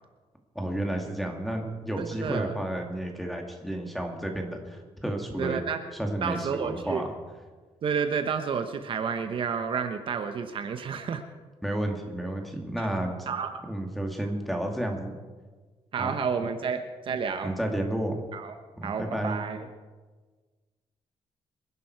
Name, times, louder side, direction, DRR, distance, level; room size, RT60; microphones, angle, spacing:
voice 1, 0.5-5.6 5.9-7.1 11.6-13.3 13.7-15.1 16.0-16.2 17.4-18.1 18.8-19.4, right 1 dB, ahead, 2 dB, 2.4 m, -31 dB
voice 2, 2.0-2.5 5.4-5.8 6.2-7.0 7.8-11.2 13.3-13.5 15.9-17.5 18.3-18.6 18.8-19.6, right 6 dB, 50° right, 7 dB, 1.0 m, -30 dB
26.5 x 11.0 x 4.7 m, 1.4 s
cardioid pair, 130°, 11 cm